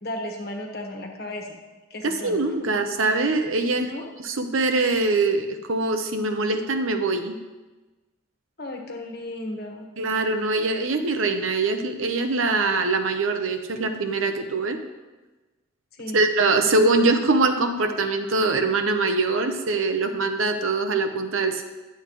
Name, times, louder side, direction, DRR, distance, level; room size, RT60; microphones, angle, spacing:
voice 1, 0.0-1.6 1.9-2.7 3.8-4.1 8.6-9.9 16.0-16.2, left 1 dB, 50° left, 2 dB, 1.3 m, -34 dB
voice 2, 2.0-3.9 4.2-7.4 10.0-14.8 16.1-21.6, right 3 dB, 75° right, 6 dB, 0.8 m, -23 dB
11.5 x 8.0 x 3.2 m, 1.2 s
head